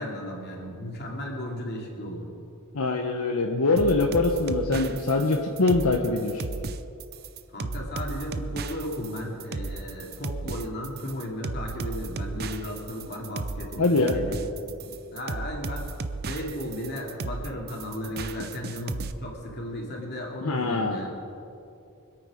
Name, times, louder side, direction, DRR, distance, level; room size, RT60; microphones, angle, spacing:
voice 1, 0.0-2.3 7.5-14.3 14.6-15.9 16.2-21.1, left 1 dB, 50° left, -1 dB, 2.8 m, -35 dB
voice 2, 2.7-6.4 13.8-14.2 20.4-21.0, left 3 dB, 75° left, 2 dB, 1.0 m, -23 dB
sound 1, 3.8-19.1, right 3 dB, 45° right, 0.6 m, -34 dB
24.5 x 8.9 x 5.0 m, 2.7 s
head